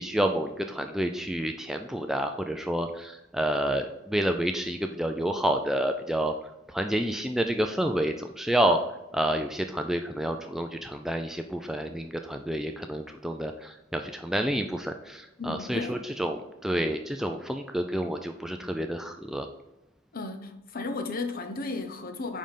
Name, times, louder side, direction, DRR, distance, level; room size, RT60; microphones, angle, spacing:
voice 1, 0.0-6.3 6.7-8.8 9.1-19.5, right 1 dB, ahead, 0.3 m, -29 dB
voice 2, 15.4-16.0 20.1-22.4, left 3 dB, 45° left, 0.8 m, -34 dB
5.3 x 5.1 x 5.6 m
head